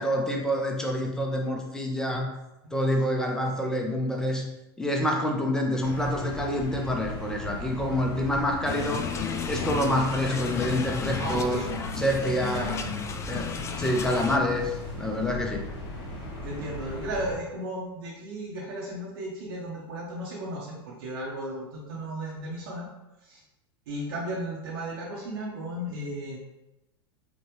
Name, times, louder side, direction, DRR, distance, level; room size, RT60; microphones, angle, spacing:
voice 1, 0.0-2.3 2.7-4.5 4.8-9.1 9.5-11.6 12.0-12.8 13.3-15.7, equal, 5° left, 1 dB, 0.7 m, -27 dB
sound 1, 5.8-17.3, left 1 dB, 60° left, 1.5 m, -38 dB
sound 2, 8.6-14.4, left 6 dB, 20° left, 0.4 m, -33 dB
voice 2, 11.2-11.8 12.5-12.7 16.4-22.9 23.2-23.4 23.9-26.4, right 1 dB, 70° right, -5 dB, 1.0 m, -35 dB
5.2 x 2.4 x 3.1 m, 0.95 s
hypercardioid pair, 100°, 13 cm